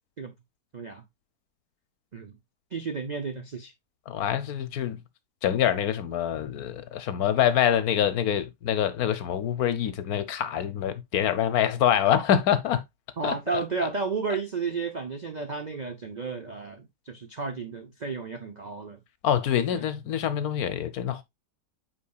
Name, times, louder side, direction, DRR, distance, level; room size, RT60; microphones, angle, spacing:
voice 1, 2.7-3.7 13.2-19.0 19.7-19.9, right 4 dB, 85° right, 0.3 m, -32 dB
voice 2, 4.1-5.0 5.4-12.8 13.2-13.6 19.2-21.2, left 10 dB, 65° left, 1.2 m, -25 dB
8.5 x 5.0 x 2.3 m
omnidirectional pair, 1.8 m